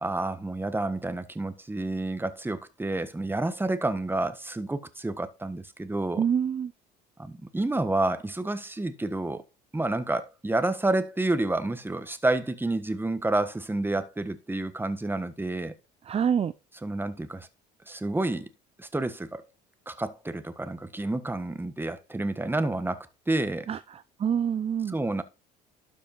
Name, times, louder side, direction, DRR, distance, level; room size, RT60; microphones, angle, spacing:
voice 1, 0.0-6.2 7.2-9.4 9.7-15.7 16.8-17.5 17.9-18.5 18.8-19.4 19.9-23.7 24.9-25.2, right 2 dB, 10° right, 1.4 m, -29 dB
voice 2, 6.2-6.7 16.1-16.5 23.7-25.0, right 8 dB, 30° right, 0.6 m, -26 dB
12.0 x 5.3 x 4.3 m
supercardioid pair, 75°, 20 cm